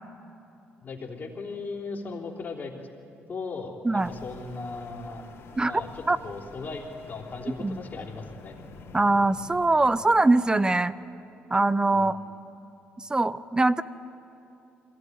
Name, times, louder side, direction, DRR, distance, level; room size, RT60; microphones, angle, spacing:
voice 1, 0.8-2.9 3.3-5.3 5.6-8.5 11.9-12.3, left 4 dB, 45° left, -1 dB, 3.5 m, -37 dB
sound 1, 4.0-10.1, left 4 dB, 70° left, 3.2 m, -48 dB
voice 2, 8.9-10.9 11.5-12.2 13.1-13.8, right 2 dB, 20° right, 16 dB, 0.7 m, -22 dB
22.0 x 16.5 x 9.6 m, 3.0 s
supercardioid pair, 75°, 5 cm